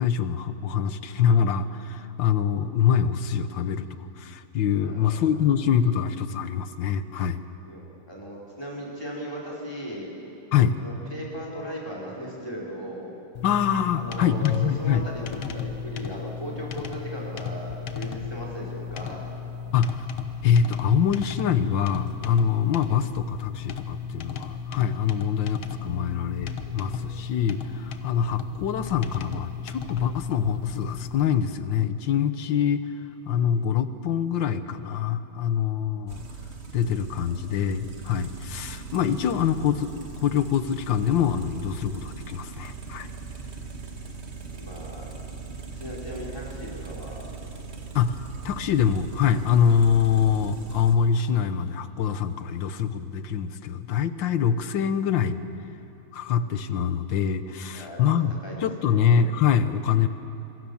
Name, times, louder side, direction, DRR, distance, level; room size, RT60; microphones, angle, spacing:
voice 1, 0.0-3.9 4.2-7.4 10.5-10.8 13.4-15.0 19.7-20.1 20.4-32.8 33.3-36.2 36.7-43.1 47.9-55.4 56.1-58.3 58.6-60.1, left 8 dB, 70° left, 12 dB, 1.6 m, -24 dB
voice 2, 4.8-5.2 7.6-10.1 10.8-13.1 13.9-19.2 44.5-45.1 45.7-47.2 57.7-58.1 58.4-59.0, equal, 10° left, -4 dB, 4.9 m, -37 dB
sound 1, 13.4-31.3, left 6 dB, 85° left, 2.0 m, -35 dB
sound 2, 36.1-50.9, right 4 dB, 35° right, 1.7 m, -40 dB
26.5 x 22.0 x 7.2 m, 3.0 s
omnidirectional pair, 2.2 m